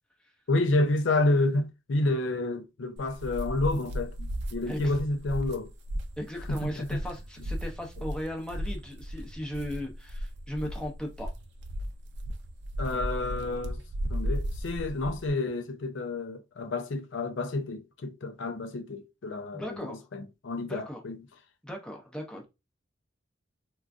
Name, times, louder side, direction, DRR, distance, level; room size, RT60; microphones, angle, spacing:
voice 1, 0.5-5.7 6.5-7.0 12.8-13.8 14.1-21.2, left 2 dB, 70° left, 0.5 m, -29 dB
sound 1, 3.0-15.3, equal, 60° right, 0.5 m, -35 dB
voice 2, 6.2-11.3 19.5-20.1 20.7-21.0 21.6-22.4, equal, 5° left, 0.6 m, -37 dB
3.7 x 2.3 x 2.4 m
head